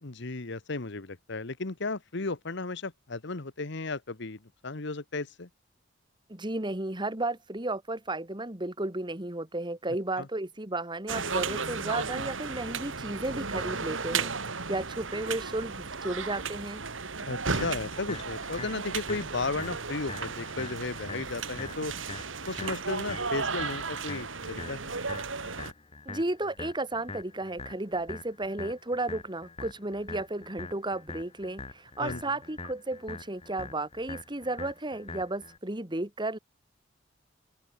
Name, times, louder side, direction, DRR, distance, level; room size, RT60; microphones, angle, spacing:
voice 1, 0.0-5.5 10.2-10.3 17.2-21.9 22.5-24.9 32.0-32.2, left 3 dB, 65° left, 1.3 m, -34 dB
voice 2, 6.3-16.8 26.1-36.4, right 2 dB, 25° right, 2.6 m, -33 dB
sound 1, 11.1-25.7, right 4 dB, 85° right, 2.8 m, -34 dB
sound 2, 17.6-35.6, left 3 dB, 30° left, 1.3 m, -44 dB
open air
head